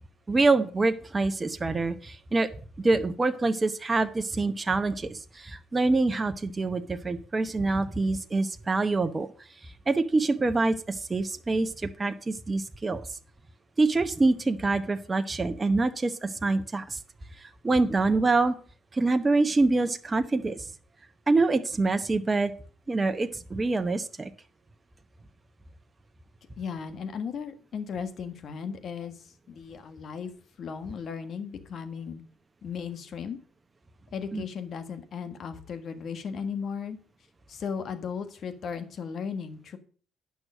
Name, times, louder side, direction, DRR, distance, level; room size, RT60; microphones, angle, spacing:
voice 1, 0.3-2.5 2.8-9.3 9.6-13.0 13.8-17.0 17.4-18.5 18.9-20.7 21.3-22.5 22.9-24.3 34.3-34.4, right 3 dB, 25° right, 8 dB, 0.9 m, -25 dB
voice 2, 26.6-29.2 29.5-30.3 30.6-32.2 32.6-33.4 34.1-37.0 37.5-39.8, left 6 dB, 55° left, 9 dB, 1.5 m, -36 dB
9.6 x 6.2 x 6.4 m, 0.43 s
supercardioid pair, 65°, 0 cm